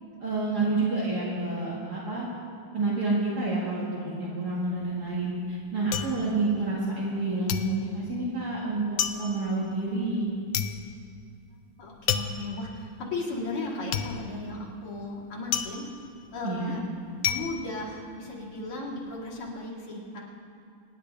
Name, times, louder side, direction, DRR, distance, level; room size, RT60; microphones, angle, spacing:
voice 1, 0.2-2.3 2.7-10.3 16.4-16.7, right 2 dB, 50° right, -6 dB, 2.4 m, -29 dB
sound 1, 4.8-7.2 7.5-18.6 18.9-19.5, left 9 dB, 70° left, 1.0 m, -33 dB
voice 2, 11.8-15.8 16.3-16.8 17.3-20.2, left 2 dB, 90° left, -4 dB, 3.1 m, -36 dB
25.0 x 9.8 x 3.4 m, 2.4 s
omnidirectional pair, 2.3 m